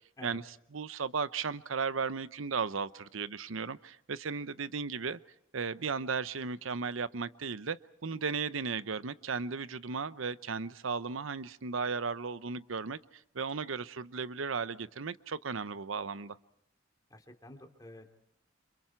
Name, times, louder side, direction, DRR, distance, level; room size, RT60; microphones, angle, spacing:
voice 1, 0.2-5.2 5.5-13.0 13.3-16.4, right 5 dB, 85° right, 15 dB, 0.8 m, -35 dB
voice 2, 17.1-18.1, left 1 dB, 20° left, 4 dB, 2.8 m, -50 dB
29.0 x 27.0 x 4.5 m, 0.75 s
head